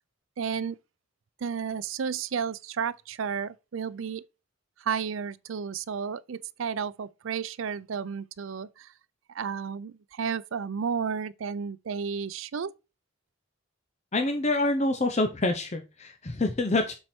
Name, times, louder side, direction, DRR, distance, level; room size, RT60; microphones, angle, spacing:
voice 1, 0.4-0.8 1.4-4.2 4.8-8.9 9.3-12.7, right 6 dB, 75° right, 0.4 m, -32 dB
voice 2, 14.1-16.9, left 2 dB, 30° left, 0.6 m, -26 dB
7.6 x 4.4 x 4.3 m
head